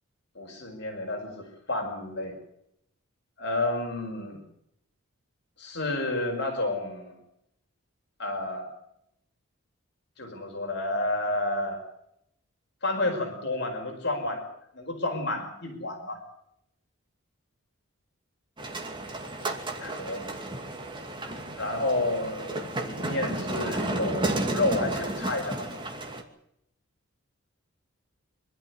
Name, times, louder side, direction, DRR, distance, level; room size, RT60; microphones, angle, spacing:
voice 1, 0.4-2.3 3.4-4.4 5.6-7.2 8.2-8.7 10.2-11.8 12.8-14.4 14.7-16.2 19.8-20.3 21.5-25.7, left 2 dB, 50° left, 3 dB, 5.3 m, -30 dB
sound 1, 18.6-26.2, right 1 dB, 20° right, 2.5 m, -32 dB
25.5 x 13.0 x 9.7 m, 0.77 s
head